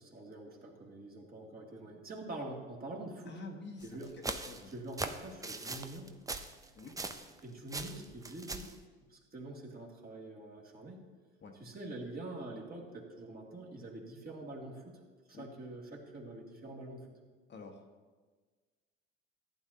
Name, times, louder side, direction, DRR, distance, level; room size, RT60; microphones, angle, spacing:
voice 1, 0.0-3.4 3.8-4.1 4.7-6.1 7.4-8.6 9.1-11.0 11.6-15.0 15.3-17.1, right 2 dB, 30° right, -1 dB, 2.4 m, -45 dB
voice 2, 3.2-4.7 6.7-7.0 11.4-11.5 15.3-15.5 17.5-17.8, left 3 dB, 35° left, 2 dB, 1.4 m, -48 dB
sound 1, 3.8-7.4 7.7-8.8, right 3 dB, 10° right, 0.7 m, -40 dB
15.0 x 9.5 x 2.9 m, 1.4 s
hypercardioid pair, 65°, 31 cm